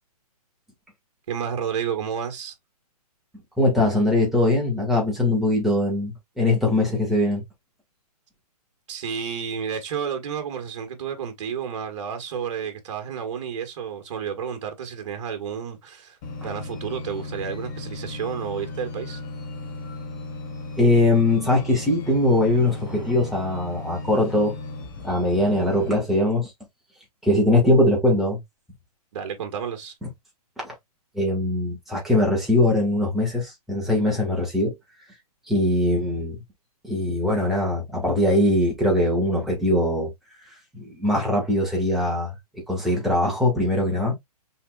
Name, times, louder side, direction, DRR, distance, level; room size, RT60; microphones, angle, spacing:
voice 1, 1.3-2.5 8.9-16.2 16.4-19.2 29.1-29.9, right 7 dB, 50° right, 1.6 m, -31 dB
voice 2, 3.6-7.4 20.8-24.5 25.0-26.5 27.2-28.4 30.0-30.1 30.6-30.7 31.2-34.7 35.5-36.4 36.8-40.1 40.7-44.2, left 1 dB, ahead, 1.8 m, -21 dB
sound 1, 16.2-26.0, left 2 dB, 30° left, 1.3 m, -36 dB
5.7 x 3.8 x 2.3 m
hypercardioid pair, 160°, 20 cm